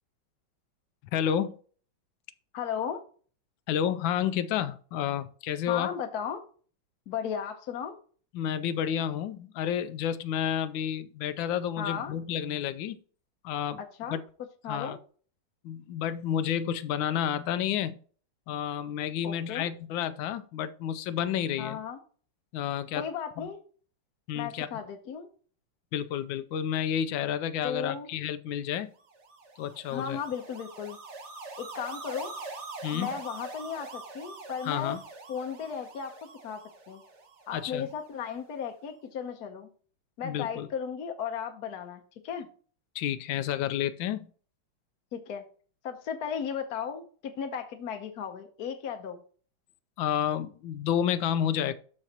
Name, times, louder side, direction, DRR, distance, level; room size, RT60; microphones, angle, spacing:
voice 1, 1.1-1.6 3.7-5.9 8.3-13.0 13.4-13.8 14.1-14.2 14.7-15.0 15.6-18.0 18.5-21.8 22.5-23.0 23.4-23.5 24.3-24.7 25.9-28.9 29.6-30.2 32.8-33.1 34.7-35.0 37.5-37.9 40.2-40.7 42.9-44.3 50.0-51.7, left 9 dB, 75° left, 1.2 m, -30 dB
voice 2, 2.5-3.0 5.7-6.4 7.1-8.0 11.8-12.1 13.8-14.2 14.6-15.0 19.2-19.7 21.6-22.0 22.9-23.6 24.3-25.3 27.6-28.1 29.9-31.0 31.6-32.4 32.9-35.0 35.3-36.6 36.9-37.0 37.5-39.7 40.2-42.5 45.1-45.5 45.8-49.2, left 7 dB, 60° left, 1.1 m, -35 dB
sound 1, 29.1-38.4, right 3 dB, 40° right, 1.1 m, -44 dB
13.0 x 4.3 x 2.8 m
omnidirectional pair, 2.3 m